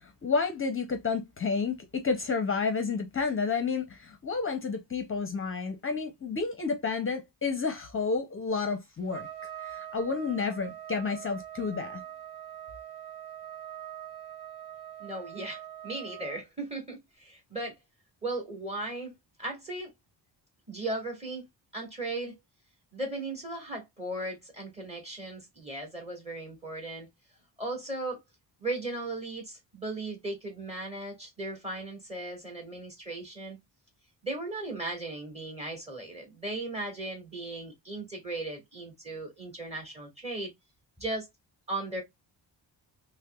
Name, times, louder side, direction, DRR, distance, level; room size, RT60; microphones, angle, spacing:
voice 1, 0.0-9.3 9.6-12.0, left 4 dB, 30° left, 0.6 m, -30 dB
Trumpet, 9.1-16.4, right 11 dB, 50° right, 0.9 m, -43 dB
voice 2, 15.0-17.8 18.2-19.1 19.4-19.9 20.7-21.5 21.7-22.4 22.9-27.1 27.6-28.2 28.6-33.6 34.2-40.5 41.0-41.3 41.7-42.0, right 2 dB, 15° right, 1.9 m, -37 dB
5.6 x 2.1 x 2.2 m
wide cardioid pair, 155°, 42 cm